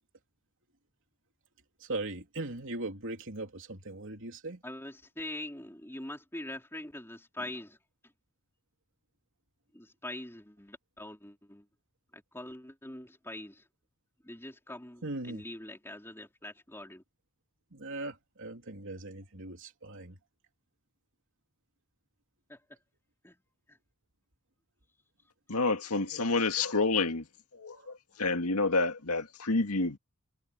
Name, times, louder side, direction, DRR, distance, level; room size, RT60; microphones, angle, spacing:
voice 1, 1.8-4.6 15.0-15.4 17.7-20.2 25.9-26.0 27.7-27.9, right 2 dB, 60° right, 3.3 m, -39 dB
voice 2, 4.6-7.8 9.7-11.6 12.1-13.6 14.2-17.0 22.5-22.6 23.2-23.3 23.7-23.8, left 1 dB, 10° left, 3.6 m, -43 dB
voice 3, 25.5-27.3 27.5-30.0, left 3 dB, 85° left, 2.0 m, -29 dB
head